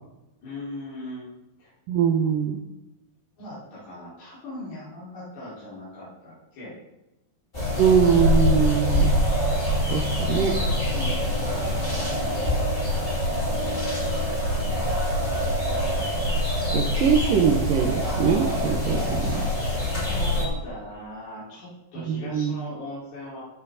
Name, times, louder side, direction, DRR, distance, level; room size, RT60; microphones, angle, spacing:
voice 1, 0.4-1.3 1.6-1.7 3.4-6.8 10.9-11.5 18.8-23.4, left 1 dB, 80° left, -10 dB, 7.1 m, -39 dB
voice 2, 1.9-2.6 7.8-9.1 9.9-10.6 16.7-19.5 22.1-22.5, right 7 dB, 70° right, 1 dB, 2.7 m, -22 dB
sound 1, 7.5-20.4, equal, 15° left, 4.4 m, -24 dB
16.0 x 9.5 x 4.2 m, 0.94 s
omnidirectional pair, 4.2 m